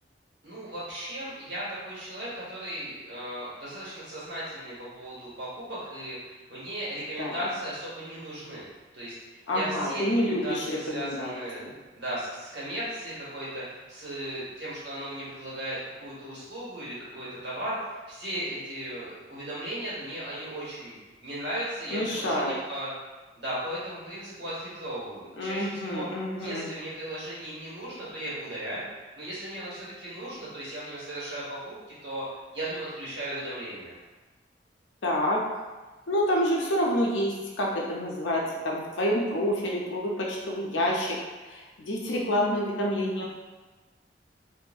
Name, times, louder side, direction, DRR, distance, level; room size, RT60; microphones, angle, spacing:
voice 1, 0.4-8.6 8.9-9.2 9.5-11.6 11.9-21.0 21.2-22.9 23.3-26.1 26.4-31.7 32.0-32.2 32.5-33.9, right 1 dB, 70° right, -10 dB, 1.3 m, -36 dB
voice 2, 9.5-11.3 11.6-11.7 21.9-22.5 25.4-26.7 35.0-35.6 36.1-41.2 41.4-43.3, equal, 85° left, -2 dB, 0.5 m, -28 dB
2.6 x 2.6 x 2.3 m, 1.2 s
head